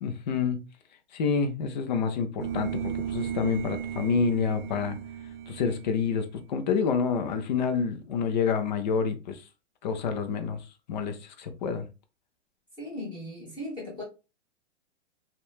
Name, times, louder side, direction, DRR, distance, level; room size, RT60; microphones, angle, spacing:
voice 1, 0.0-0.6 1.1-5.0 5.5-9.4 9.8-10.6 10.9-11.9, left 6 dB, 40° left, 0.4 m, -28 dB
sound 1, 2.4-6.4, right 9 dB, 55° right, 0.6 m, -35 dB
voice 2, 12.8-14.0, left 1 dB, 15° left, 1.2 m, -37 dB
2.8 x 2.2 x 2.3 m
hypercardioid pair, 145°, 37 cm